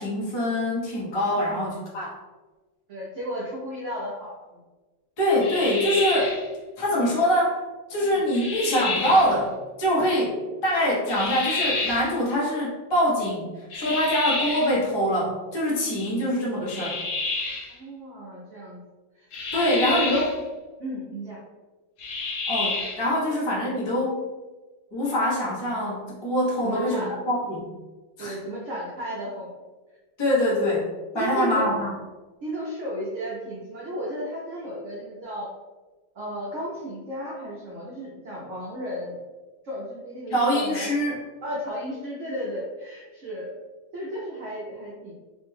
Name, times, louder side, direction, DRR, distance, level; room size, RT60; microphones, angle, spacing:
voice 1, 0.0-2.1 5.2-6.3 6.8-7.6 7.9-9.5 9.8-13.5 13.7-17.0 19.5-20.3 22.5-24.2 24.9-27.7 28.2-28.4 30.2-30.9 31.1-31.9 40.3-41.2, equal, 45° left, -6 dB, 0.3 m, -24 dB
voice 2, 1.3-1.6 2.9-4.6 8.0-8.2 17.7-18.8 19.1-19.3 19.5-20.0 20.8-21.4 26.6-27.1 28.2-29.6 30.5-30.6 31.1-31.7 32.4-35.5 36.1-39.2 39.6-40.9 41.4-43.6 43.9-45.1, equal, 70° right, -6 dB, 0.7 m, -34 dB
sound 1, 5.4-6.5 8.3-9.3 11.1-12.1 13.7-14.8 16.7-17.7 19.3-20.4 22.0-23.1, left 3 dB, 70° left, 1.3 m, -29 dB
3.3 x 2.2 x 3.2 m, 1.2 s
omnidirectional pair, 2.1 m